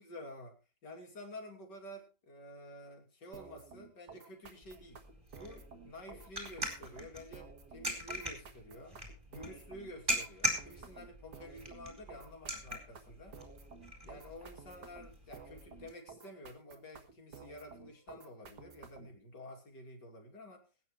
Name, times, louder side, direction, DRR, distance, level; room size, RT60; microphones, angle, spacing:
voice 1, 0.0-5.0 5.4-9.0 9.3-13.4 14.1-20.7, left 1 dB, 90° left, 2 dB, 3.6 m, -50 dB
sound 1, 3.3-19.2, right 5 dB, 75° right, 2.3 m, -53 dB
sound 2, 4.6-15.9, equal, 20° right, 4.5 m, -42 dB
21.5 x 9.7 x 3.2 m, 0.31 s
omnidirectional pair, 1.8 m